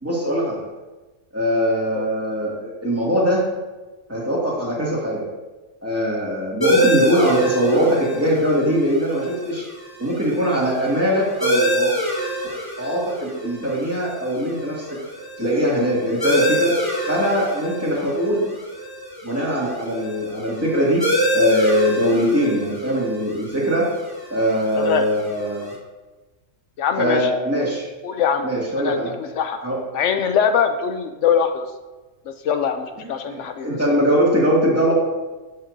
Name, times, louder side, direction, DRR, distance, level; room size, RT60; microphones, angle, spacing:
voice 1, 0.0-0.6 1.3-3.5 4.1-5.3 5.8-9.7 10.0-11.9 12.8-15.0 15.4-16.8 17.1-18.5 19.2-21.1 21.3-23.9 24.3-25.7 27.0-27.8 28.4-29.2 29.6-29.8 33.0-34.9, equal, 10° right, -6 dB, 2.2 m, -21 dB
sound 1, 6.6-25.8, equal, 20° left, 1.4 m, -26 dB
voice 2, 24.8-25.1 26.8-27.3 28.0-28.5 28.8-29.6 29.9-31.7 32.3-33.8, left 7 dB, 80° left, 7 dB, 0.9 m, -22 dB
12.0 x 6.6 x 2.7 m, 1.2 s
omnidirectional pair, 1.3 m